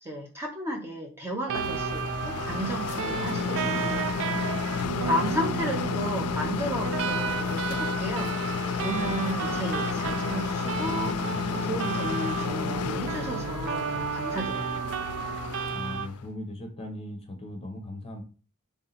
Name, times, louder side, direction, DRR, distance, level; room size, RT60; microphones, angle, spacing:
voice 1, 0.0-8.3 8.8-14.7, equal, 10° right, -1 dB, 0.6 m, -34 dB
sound 1, 1.5-16.2, left 5 dB, 75° left, 0.4 m, -31 dB
sound 2, 1.5-16.1, right 7 dB, 60° right, 0.3 m, -33 dB
voice 2, 15.7-18.2, left 1 dB, 25° left, 4 dB, 0.8 m, -38 dB
3.4 x 2.7 x 4.0 m, 0.36 s
head